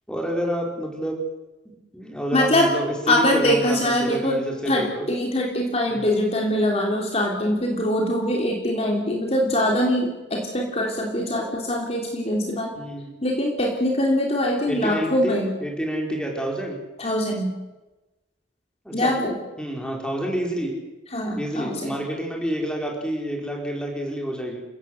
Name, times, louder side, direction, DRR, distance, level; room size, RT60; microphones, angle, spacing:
voice 1, 0.1-1.2 1.9-5.1 5.9-6.1 12.7-13.1 14.7-16.8 18.8-19.1 19.6-20.7 21.4-24.6, equal, 5° left, 0 dB, 5.0 m, -28 dB
voice 2, 2.3-2.7 3.1-12.7 13.2-15.5 17.0-17.5 18.9-19.4 21.1-21.9, left 1 dB, 35° left, 0 dB, 3.2 m, -23 dB
29.0 x 17.0 x 7.9 m, 1.1 s
head